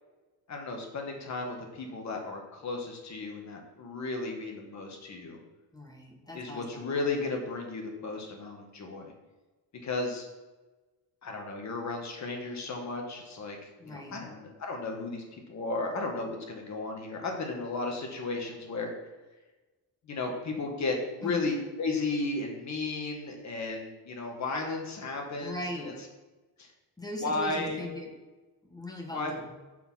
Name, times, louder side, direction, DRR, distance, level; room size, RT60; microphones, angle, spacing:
voice 1, 0.5-5.4 6.3-9.1 9.8-10.3 11.2-13.6 13.8-18.9 20.0-25.9 26.6-26.7 27.2-27.8 29.1-29.3, left 3 dB, 45° left, 2 dB, 1.7 m, -34 dB
voice 2, 5.7-7.0 13.8-14.2 21.2-21.4 25.4-25.9 27.0-28.1 28.6-29.5, left 1 dB, 10° left, 0 dB, 1.4 m, -39 dB
6.9 x 4.7 x 5.6 m, 1.2 s
cardioid pair, 125°, 39 cm